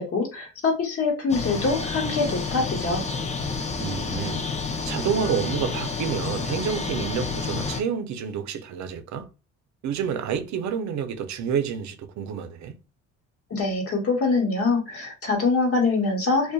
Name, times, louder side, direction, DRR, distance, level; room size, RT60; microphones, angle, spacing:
voice 1, 0.0-3.0 13.5-16.5, left 3 dB, 50° left, 1.1 m, -24 dB
sound 1, 1.3-7.8, left 4 dB, 25° left, 0.5 m, -29 dB
voice 2, 3.8-4.5 4.9-9.3 9.8-12.8, right 7 dB, 65° right, 0.5 m, -29 dB
2.6 x 2.2 x 2.2 m
cardioid pair, 90°, 30 cm